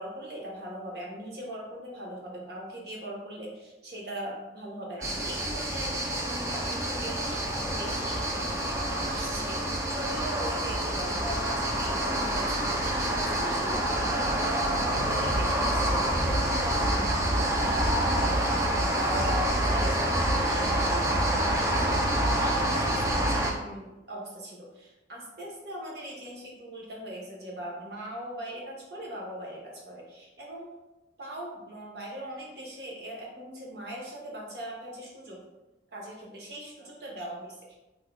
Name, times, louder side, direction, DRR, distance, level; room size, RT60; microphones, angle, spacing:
voice 1, 0.0-8.3 8.8-9.6 9.9-30.7 31.2-35.4 35.9-37.7, right 1 dB, 65° right, -3 dB, 0.9 m, -40 dB
sound 1, 5.0-23.5, right 1 dB, 15° right, 0.3 m, -27 dB
3.6 x 2.2 x 3.1 m, 1.0 s
head